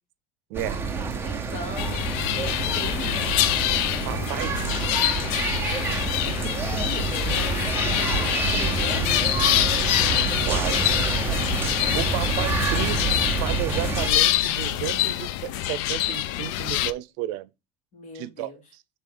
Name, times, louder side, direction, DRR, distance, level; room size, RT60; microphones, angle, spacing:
sound 1, 0.5-14.1, right 4 dB, 15° right, 0.8 m, -27 dB
voice 1, 0.5-0.8 4.1-5.0 10.4-11.1 11.9-17.5 18.1-18.8, right 15 dB, 85° right, 0.6 m, -33 dB
voice 2, 1.2-3.5 5.7-5.8 6.2-8.2 8.5-9.4 17.9-18.6, left 1 dB, 40° left, 2.7 m, -40 dB
sound 2, 1.8-16.9, left 14 dB, 90° left, 0.5 m, -25 dB
7.0 x 4.0 x 3.7 m
cardioid pair, 175°, 18 cm